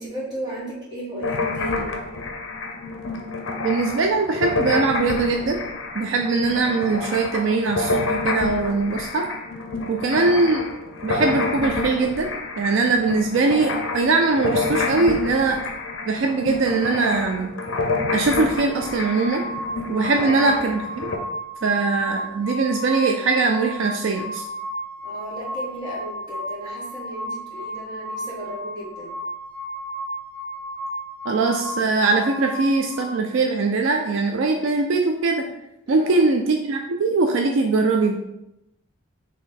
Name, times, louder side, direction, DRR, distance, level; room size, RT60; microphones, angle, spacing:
voice 1, 0.0-1.9 9.8-10.3 20.1-20.4 25.0-29.1 35.9-36.3, right 1 dB, 20° right, -7 dB, 1.4 m, -35 dB
sound 1, 1.2-21.2, left 3 dB, 60° left, 0.7 m, -28 dB
voice 2, 3.6-5.6 5.9-9.3 9.9-10.7 11.0-12.3 12.6-15.6 16.1-17.5 18.1-19.5 19.9-21.1 21.6-24.4 31.3-35.6 35.9-38.2, right 3 dB, 60° right, 3 dB, 0.4 m, -21 dB
sound 2, 18.7-33.2, equal, 10° left, 0.4 m, -33 dB
4.0 x 3.1 x 4.1 m, 0.89 s
head